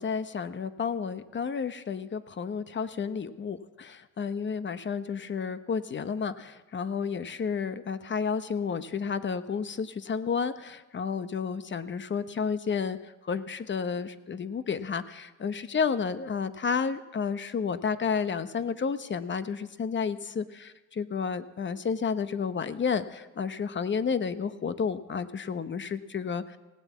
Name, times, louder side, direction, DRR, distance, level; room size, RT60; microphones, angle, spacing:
voice 1, 0.0-13.0 13.3-26.4, left 6 dB, 40° left, 13 dB, 0.9 m, -31 dB
17.5 x 9.5 x 8.4 m, 1.2 s
cardioid pair, 90°, 30 cm